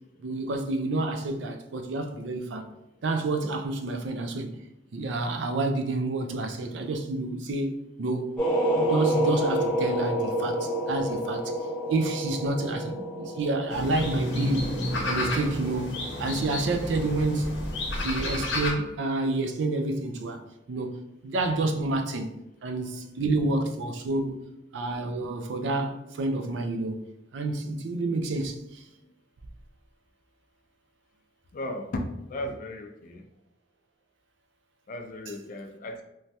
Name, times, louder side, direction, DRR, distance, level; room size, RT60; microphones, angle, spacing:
voice 1, 0.2-2.6 3.0-4.6 4.9-8.4 8.8-11.5 11.9-14.8 15.0-17.6 17.9-20.4 20.7-22.3 22.6-24.4 24.7-27.0 27.3-28.8, right 2 dB, 70° right, 0.4 m, -29 dB
sound 1, 8.4-15.5, right 1 dB, 5° left, 1.0 m, -29 dB
sound 2, 13.7-18.7, left 1 dB, 70° left, 0.8 m, -31 dB
voice 2, 31.5-33.3 34.9-36.0, left 1 dB, 45° left, 0.3 m, -35 dB
3.1 x 2.2 x 2.7 m
head